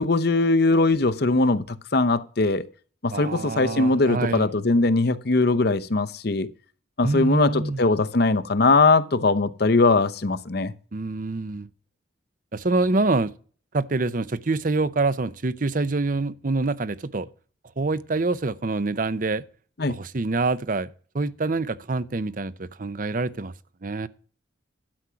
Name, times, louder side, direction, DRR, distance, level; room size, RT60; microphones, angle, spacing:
voice 1, 0.0-2.6 3.0-6.5 7.0-10.7 19.8-19.9, left 3 dB, 55° left, 0.7 m, -21 dB
voice 2, 3.1-4.5 7.0-7.8 10.9-11.7 12.5-13.3 13.7-17.3 17.8-19.4 19.9-20.9 21.1-23.5 23.8-24.1, right 3 dB, 45° right, 0.6 m, -26 dB
12.0 x 6.2 x 5.7 m
head